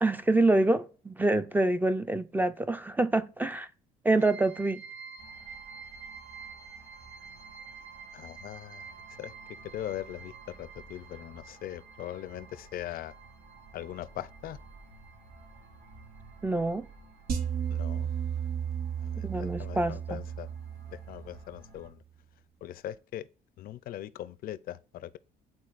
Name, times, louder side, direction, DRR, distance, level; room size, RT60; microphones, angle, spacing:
voice 1, 0.0-3.7 4.0-4.8 16.4-16.8 19.2-20.2, right 2 dB, 10° right, 0.4 m, -26 dB
sound 1, 4.2-18.5 18.8-19.8 20.1-20.2 20.7-20.8, right 6 dB, 45° right, 1.5 m, -50 dB
sound 2, 5.2-21.9, right 3 dB, 80° right, 1.8 m, -54 dB
voice 2, 8.1-8.9 9.2-9.3 9.7-10.3 10.6-13.1 13.7-14.6 17.7-18.1 19.0-20.5 20.9-22.0 22.6-23.3 23.6-25.2, left 12 dB, 60° left, 0.4 m, -40 dB
sound 3, 17.3-21.6, right 8 dB, 60° right, 0.9 m, -34 dB
10.5 x 3.9 x 2.5 m
cardioid pair, 110°, 17 cm